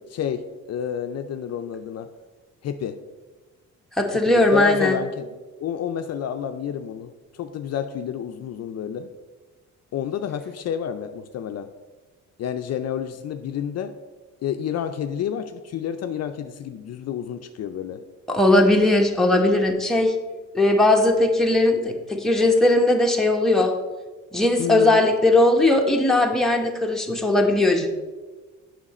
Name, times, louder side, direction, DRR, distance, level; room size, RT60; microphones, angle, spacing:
voice 1, 0.1-0.4 0.7-2.1 2.6-3.0 4.1-9.1 9.9-11.7 12.4-13.9 14.4-18.0 24.6-25.0, left 8 dB, 60° left, 8 dB, 0.5 m, -29 dB
voice 2, 4.0-5.0 18.3-20.1 20.5-23.7 24.3-27.9, left 2 dB, ahead, 1 dB, 1.1 m, -19 dB
7.3 x 5.8 x 4.2 m, 1.3 s
cardioid pair, 90°, 30 cm